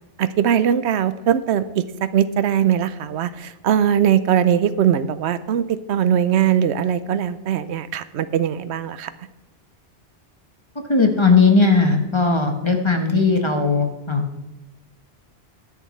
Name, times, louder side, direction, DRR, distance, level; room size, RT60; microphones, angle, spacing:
voice 1, 0.2-9.1, right 9 dB, 80° right, 14 dB, 0.9 m, -20 dB
voice 2, 10.9-14.3, left 4 dB, 25° left, 4 dB, 1.1 m, -17 dB
20.0 x 7.0 x 3.2 m, 1.0 s
omnidirectional pair, 1.1 m